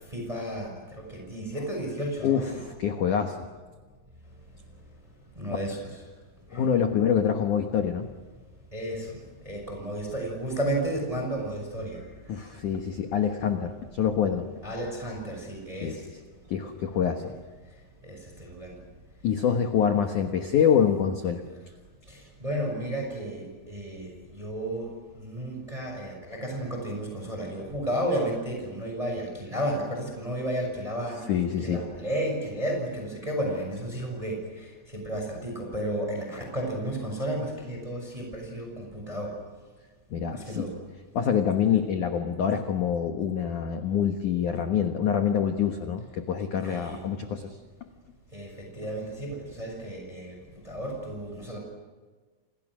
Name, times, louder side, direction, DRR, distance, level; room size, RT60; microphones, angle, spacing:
voice 1, 0.1-0.7 1.0-2.6 5.4-5.8 6.5-6.7 8.7-9.2 9.4-12.1 14.6-16.0 18.0-18.8 22.1-24.1 24.3-31.2 31.6-34.4 34.9-39.3 40.3-40.7 46.6-47.0 48.3-50.4 50.6-51.6, right 1 dB, 5° right, 1 dB, 5.7 m, -32 dB
voice 2, 2.2-3.4 6.5-8.1 12.3-14.5 15.8-16.0 16.5-17.2 19.2-21.4 31.3-31.8 40.1-40.7 41.1-47.6, left 8 dB, 80° left, 5 dB, 1.8 m, -26 dB
30.0 x 28.0 x 6.3 m, 1.4 s
omnidirectional pair, 5.8 m